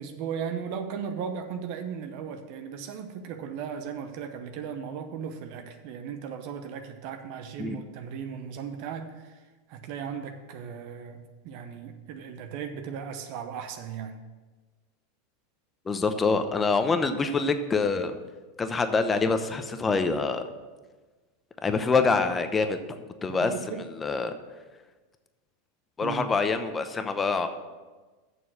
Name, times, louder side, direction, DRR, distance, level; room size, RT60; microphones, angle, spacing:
voice 1, 0.0-14.2 23.3-23.9 26.0-26.3, right 7 dB, 60° right, 7 dB, 0.8 m, -37 dB
voice 2, 15.9-18.2 18.6-20.5 21.6-24.3 26.0-27.5, left 4 dB, 20° left, 9 dB, 0.8 m, -26 dB
7.0 x 6.3 x 7.5 m, 1.3 s
supercardioid pair, 120°, 0 cm